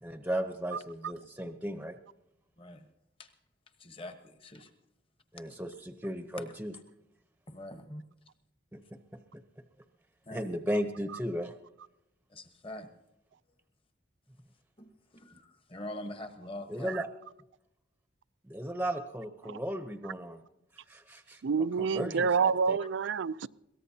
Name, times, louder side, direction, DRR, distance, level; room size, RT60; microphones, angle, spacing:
voice 1, 0.0-2.0 5.3-6.7 8.7-8.8 10.3-11.5 16.7-17.1 18.4-20.4 20.9-21.4 21.8-22.8, equal, 10° right, 0.7 m, -35 dB
voice 2, 2.6-2.9 3.2-3.3 3.8-4.7 7.5-8.0 10.2-10.5 12.3-12.9 14.8-17.0, left 1 dB, 30° left, 1.1 m, -44 dB
voice 3, 21.4-23.5, right 5 dB, 85° right, 0.4 m, -28 dB
22.5 x 17.5 x 2.8 m
head